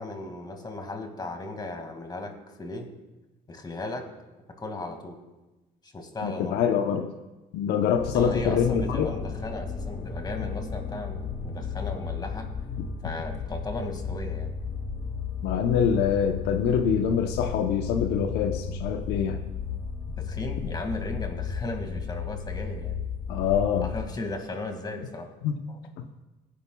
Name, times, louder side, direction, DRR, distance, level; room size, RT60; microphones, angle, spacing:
voice 1, 0.0-2.3 2.6-2.9 3.5-4.1 4.6-5.2 5.9-6.6 8.1-12.5 13.0-14.5 20.2-23.0 23.8-25.3 25.7-25.8, left 2 dB, 25° left, 4 dB, 2.0 m, -36 dB
voice 2, 6.2-7.1 7.5-9.1 15.4-19.5 23.3-23.9 25.4-25.6, left 7 dB, 85° left, 6 dB, 0.8 m, -25 dB
sound 1, 7.9-24.2, left 6 dB, 40° left, 1.3 m, -34 dB
21.5 x 10.5 x 2.3 m, 1.1 s
cardioid pair, 110°, 17 cm